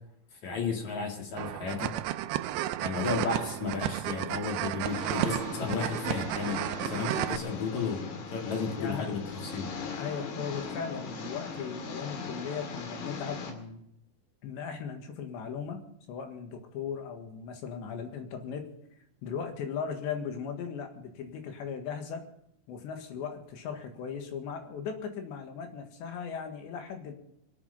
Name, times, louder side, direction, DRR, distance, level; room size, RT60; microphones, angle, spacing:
voice 1, 0.4-2.0 2.8-9.7, left 5 dB, 50° left, 2 dB, 2.9 m, -33 dB
sound 1, 1.4-7.4, right 14 dB, 80° right, 2.6 m, -32 dB
Engine, 4.8-13.5, left 4 dB, 65° left, 4.0 m, -39 dB
voice 2, 8.8-9.1 10.0-13.8 14.4-18.7 19.2-22.3 22.7-27.1, left 6 dB, 80° left, 5 dB, 4.0 m, -38 dB
25.5 x 8.9 x 5.5 m, 0.76 s
omnidirectional pair, 5.0 m